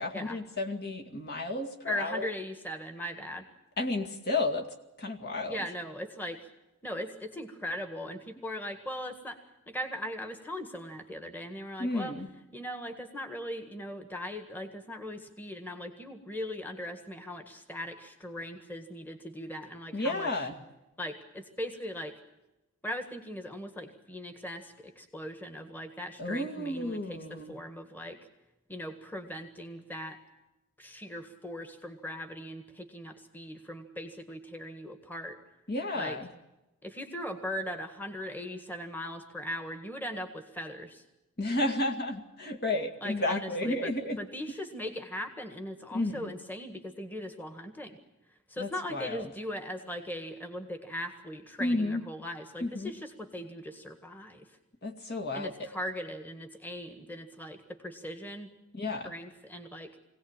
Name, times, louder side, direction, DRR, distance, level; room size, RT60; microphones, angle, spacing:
voice 1, 0.0-2.3 3.8-4.7 5.0-5.6 11.8-12.3 19.9-20.6 26.2-27.5 35.7-36.3 41.4-44.2 45.9-46.3 48.6-49.3 51.6-52.0 52.6-52.9 54.8-55.7 58.7-59.1, left 2 dB, 50° left, 3 dB, 2.2 m, -32 dB
voice 2, 1.9-3.5 5.5-6.4 6.8-9.4 9.7-12.1 12.5-20.3 21.0-22.1 22.8-28.2 28.7-30.2 30.8-35.4 35.9-36.2 36.8-41.0 43.0-43.9 44.2-48.0 48.5-54.6 55.3-58.5 59.0-59.9, equal, 10° left, 7 dB, 1.7 m, -39 dB
23.5 x 17.5 x 8.9 m, 0.98 s
head